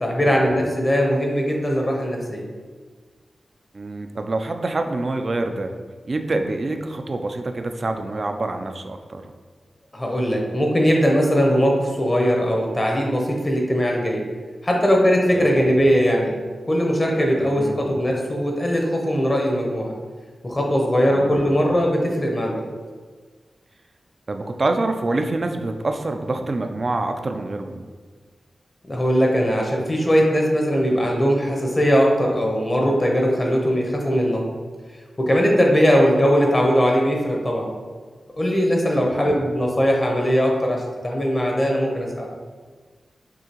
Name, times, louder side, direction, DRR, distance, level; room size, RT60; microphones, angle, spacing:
voice 1, 0.0-2.5 9.9-14.2 14.6-16.4 16.7-19.9 20.4-22.6 28.9-34.4 35.2-37.7 38.4-42.3, equal, 25° left, 0 dB, 0.8 m, -20 dB
voice 2, 3.7-5.7 6.1-9.2 15.3-15.6 17.4-17.9 21.1-21.5 24.3-27.9 38.9-39.4, right 2 dB, 45° right, 6 dB, 0.4 m, -26 dB
6.0 x 2.8 x 2.9 m, 1.5 s
wide cardioid pair, 90°, 0 cm